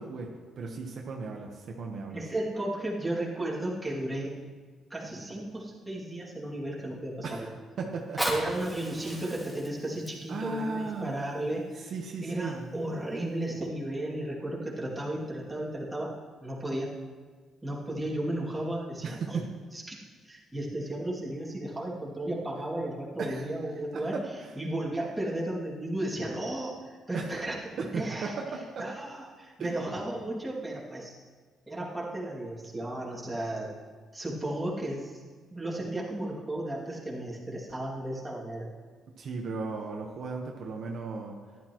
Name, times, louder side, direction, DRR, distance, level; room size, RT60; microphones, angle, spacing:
voice 1, 0.0-2.2 7.2-7.5 7.8-8.2 9.2-9.3 10.3-11.1 11.9-12.7 19.0-19.4 23.2-23.5 23.9-24.5 27.1-27.3 27.8-28.9 29.6-29.8 39.2-41.4, right 4 dB, 60° right, 1 dB, 1.1 m, -36 dB
voice 2, 2.1-4.4 4.9-7.5 8.3-11.9 12.2-16.1 16.4-16.9 17.6-19.4 19.7-20.0 20.3-24.2 24.5-28.3 28.8-31.2 31.7-33.7 34.1-35.2 35.5-38.7, right 1 dB, 10° right, -5 dB, 2.5 m, -34 dB
Fire, 7.9-12.9 13.5-13.6, equal, 5° left, 2.6 m, -38 dB
14.0 x 11.5 x 3.1 m, 1.5 s
cardioid pair, 115°, 0 cm